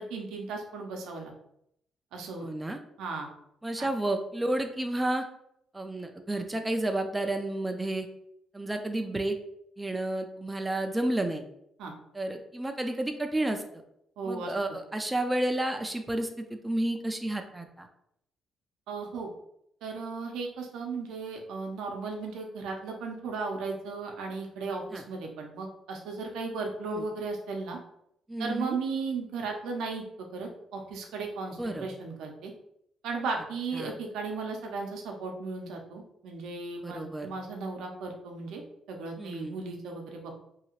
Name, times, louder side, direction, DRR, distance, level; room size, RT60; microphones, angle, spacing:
voice 1, 0.0-1.3 2.1-2.5 3.0-3.3 11.8-11.9 14.2-14.5 18.9-19.3 19.8-27.8 28.4-32.5 33.0-38.6 38.9-40.4, right 4 dB, 85° right, 2 dB, 0.6 m, -36 dB
voice 2, 2.4-2.8 3.6-5.2 5.7-8.1 8.5-9.4 9.8-11.4 12.1-13.8 14.2-17.9 24.9-25.0 26.9-27.0 28.3-28.8 31.6-31.9 33.7-33.9 36.8-37.3 39.2-39.6, right 1 dB, 15° right, 5 dB, 0.4 m, -31 dB
2.8 x 2.3 x 3.0 m, 0.75 s
cardioid pair, 90°, 0 cm